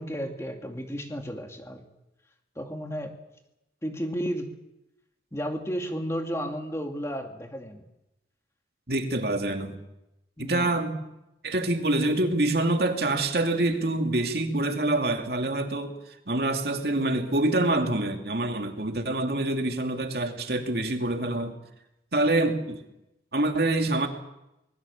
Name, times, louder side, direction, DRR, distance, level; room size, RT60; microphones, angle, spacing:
voice 1, 0.0-1.9 2.6-3.1 3.8-4.5 5.3-7.8 10.4-10.8, equal, 15° left, 4 dB, 2.4 m, -33 dB
voice 2, 8.9-9.7 10.4-11.0 11.4-16.0 16.3-21.6 22.1-22.8 23.3-24.1, right 2 dB, 65° right, 4 dB, 2.7 m, -26 dB
24.5 x 21.0 x 7.3 m, 0.91 s
head